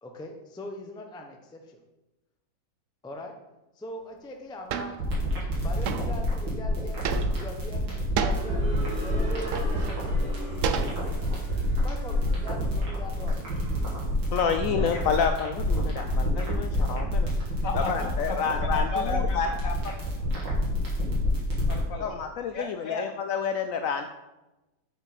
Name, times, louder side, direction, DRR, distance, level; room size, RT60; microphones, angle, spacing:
voice 1, 0.0-1.8 3.0-3.3 3.8-5.0 5.6-11.1 11.8-13.4 14.7-14.9, left 1 dB, 5° left, 2 dB, 0.5 m, -41 dB
sound 1, 4.7-5.0 5.8-6.1 7.0-7.5 8.1-8.5 9.3-9.9 10.6-11.3, right 8 dB, 70° right, 0.7 m, -30 dB
sound 2, 5.0-21.8, left 1 dB, 90° right, 3.2 m, -28 dB
sound 3, 8.3-14.2, right 1 dB, 35° right, 1.8 m, -41 dB
voice 2, 14.3-17.3 17.7-19.5 22.0-24.1, left 6 dB, 80° left, 7 dB, 0.7 m, -29 dB
voice 3, 17.6-20.4 21.7-22.1 22.5-23.1, left 3 dB, 55° left, 5 dB, 1.3 m, -35 dB
7.9 x 7.4 x 4.2 m, 1.0 s
omnidirectional pair, 1.9 m